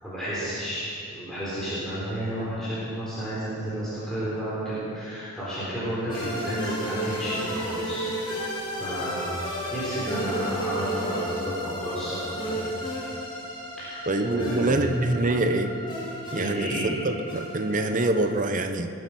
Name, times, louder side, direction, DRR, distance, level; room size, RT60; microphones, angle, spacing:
voice 1, 0.0-8.4 8.7-9.3 9.7-12.6 13.8-14.8 16.3-16.9, right 1 dB, 5° left, -12 dB, 4.3 m, -31 dB
sound 1, 6.1-18.3, equal, 25° left, 3.0 m, -33 dB
voice 2, 14.1-15.7 16.3-18.9, right 2 dB, 40° right, 7 dB, 0.9 m, -25 dB
21.0 x 9.6 x 6.2 m, 2.6 s
head